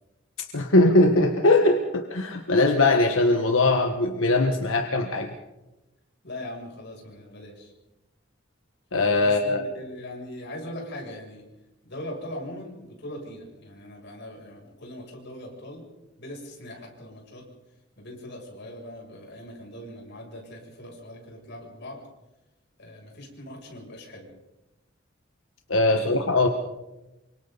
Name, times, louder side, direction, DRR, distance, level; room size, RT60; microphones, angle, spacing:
voice 1, 0.4-5.3 8.9-9.6 25.7-26.5, left 2 dB, 90° left, 4 dB, 1.5 m, -21 dB
voice 2, 6.2-7.7 9.2-11.4 11.8-15.9 16.2-17.4 18.0-22.0 22.8-24.3 25.9-26.2, left 1 dB, 60° left, 0 dB, 7.5 m, -40 dB
28.5 x 25.0 x 4.1 m, 0.98 s
head